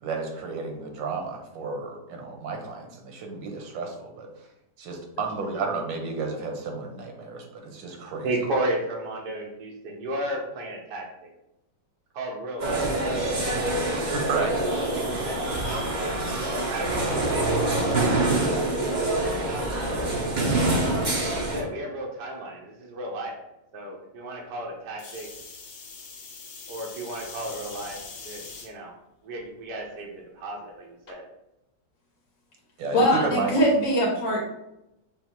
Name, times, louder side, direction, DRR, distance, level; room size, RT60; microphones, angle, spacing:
voice 1, 0.0-4.3 4.8-8.3 13.8-14.6 32.8-33.5, right 4 dB, 85° right, 2 dB, 1.6 m, -32 dB
voice 2, 8.2-11.3 12.1-12.9 14.9-15.4 16.0-16.1 16.4-18.8 19.4-20.2 21.1-23.4 23.7-25.3 26.7-28.0 28.2-28.9 29.2-31.2, right 1 dB, 70° right, -1 dB, 1.4 m, -34 dB
sound 1, 12.6-21.6, right 2 dB, 35° right, 0.7 m, -25 dB
sound 2, 25.0-28.7 29.3-29.8 31.1-31.2, left 4 dB, 55° left, 1.0 m, -42 dB
voice 3, 32.9-34.4, equal, 85° left, -3 dB, 1.7 m, -22 dB
5.9 x 2.0 x 4.4 m, 0.87 s
omnidirectional pair, 2.0 m